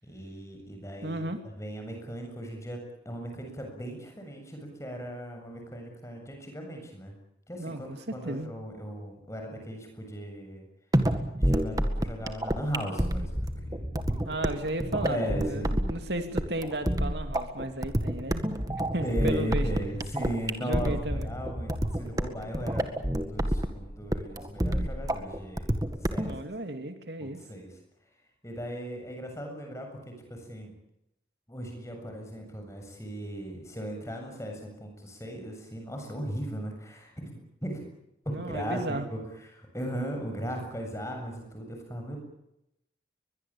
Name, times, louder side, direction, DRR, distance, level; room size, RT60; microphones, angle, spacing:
voice 1, 0.0-7.1 7.5-10.7 11.4-14.2 15.1-15.7 19.0-25.7 26.0-26.3 27.2-27.7 28.4-30.7 31.5-37.8 38.3-39.2 39.5-42.2, equal, 15° left, 3 dB, 7.3 m, -37 dB
voice 2, 1.0-1.4 7.6-8.5 14.2-15.2 15.5-19.7 20.6-21.3 26.2-27.4 38.3-39.1, right 1 dB, 75° right, 7 dB, 2.7 m, -34 dB
sound 1, 10.9-26.4, equal, 20° right, 1.9 m, -29 dB
23.0 x 22.0 x 8.7 m, 0.85 s
head